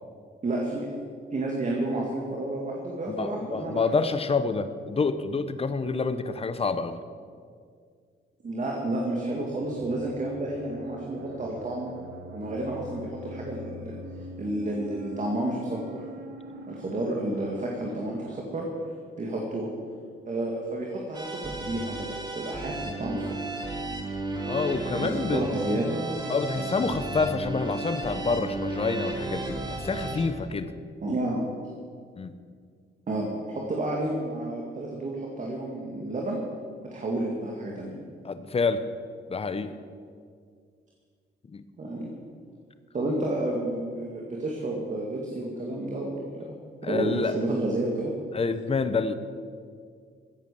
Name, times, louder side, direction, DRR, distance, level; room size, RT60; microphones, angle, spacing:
voice 1, 0.4-0.9 1.3-3.9 8.4-11.9 12.3-14.0 14.4-15.8 16.7-18.7 19.2-19.7 20.3-23.6 24.9-26.3 31.0-31.4 33.1-36.4 36.9-38.0 41.8-42.1 42.9-46.5 46.8-48.1, right 1 dB, 40° right, -1 dB, 2.3 m, -31 dB
voice 2, 3.1-7.0 24.4-25.4 26.3-30.7 32.2-32.3 38.2-38.8 39.3-39.7 41.5-41.6 46.8-47.3 48.3-49.1, left 4 dB, 30° left, 11 dB, 0.9 m, -28 dB
sound 1, 9.2-18.4, right 1 dB, 60° right, 1.5 m, -43 dB
sound 2, 21.1-30.3, right 2 dB, 20° right, 2.0 m, -33 dB
15.5 x 8.5 x 7.0 m, 2.1 s
cardioid pair, 90°, 20 cm